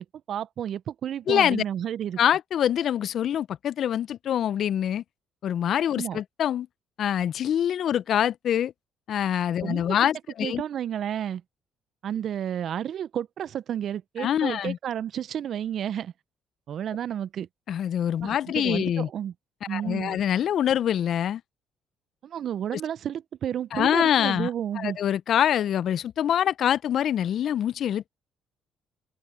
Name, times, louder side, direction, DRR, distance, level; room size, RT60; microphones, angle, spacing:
voice 1, 0.0-2.2 6.0-6.2 9.6-10.1 10.4-11.4 12.0-16.1 16.7-17.5 18.2-19.3 19.7-20.2 22.2-25.0, right 9 dB, 60° right, 0.9 m, -31 dB
voice 2, 1.3-1.6 2.2-5.0 5.4-6.7 7.0-8.7 9.1-10.6 14.2-14.8 17.7-19.1 19.7-21.4 22.7-22.8 23.7-24.5 24.8-28.1, left 10 dB, 60° left, 0.8 m, -25 dB
hypercardioid pair, 55°, 0 cm